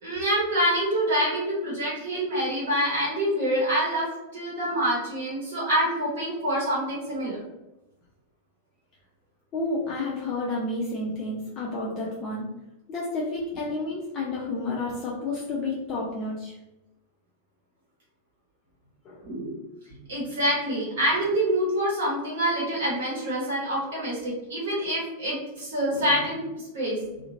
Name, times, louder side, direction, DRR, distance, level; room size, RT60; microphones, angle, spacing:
voice 1, 0.0-4.1 4.3-7.4 19.2-19.5 20.1-27.0, equal, 55° right, -6 dB, 0.9 m, -26 dB
voice 2, 9.5-12.5 12.9-16.5 19.0-19.2, left 2 dB, 35° left, -5 dB, 0.5 m, -30 dB
2.8 x 2.1 x 2.6 m, 0.97 s
figure-of-eight pair, 90°, 0 cm